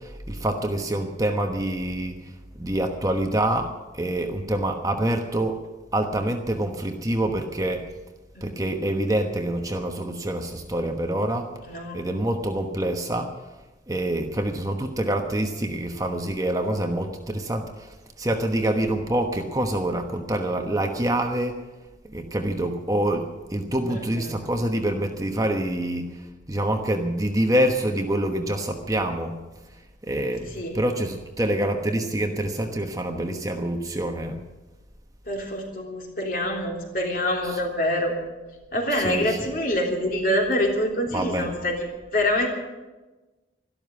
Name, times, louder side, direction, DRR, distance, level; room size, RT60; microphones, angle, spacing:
voice 1, 0.0-5.7 5.9-7.9 8.4-11.5 11.9-13.5 13.9-21.6 22.0-29.4 29.7-34.4 37.5-37.6 39.0-39.4 41.1-41.5, right 1 dB, 20° right, 4 dB, 1.1 m, -26 dB
voice 2, 11.7-12.0 23.9-24.4 30.5-30.7 35.2-38.2 38.7-42.5, left 1 dB, 50° left, 0 dB, 3.4 m, -26 dB
13.0 x 12.5 x 8.3 m, 1.2 s
head